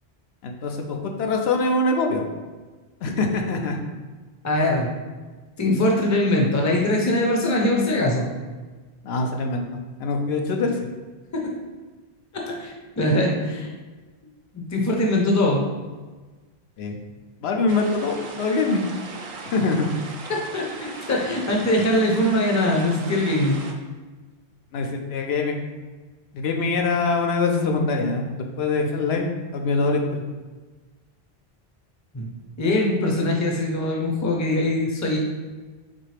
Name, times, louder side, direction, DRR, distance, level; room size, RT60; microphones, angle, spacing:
voice 1, 0.4-2.3 3.0-3.8 9.0-10.9 16.8-17.0 17.4-18.8 19.5-19.9 24.7-25.6 26.3-29.2 29.5-30.2, left 3 dB, 85° left, 3 dB, 0.8 m, -24 dB
voice 2, 4.4-4.9 5.6-8.3 11.3-11.5 12.3-13.7 14.5-15.6 20.3-23.6 32.1-32.3 32.6-35.2, left 1 dB, 20° left, 0 dB, 0.5 m, -22 dB
sound 1, 17.7-23.7, right 3 dB, 60° right, 0.7 m, -38 dB
4.2 x 3.2 x 3.2 m, 1.3 s
omnidirectional pair, 1.1 m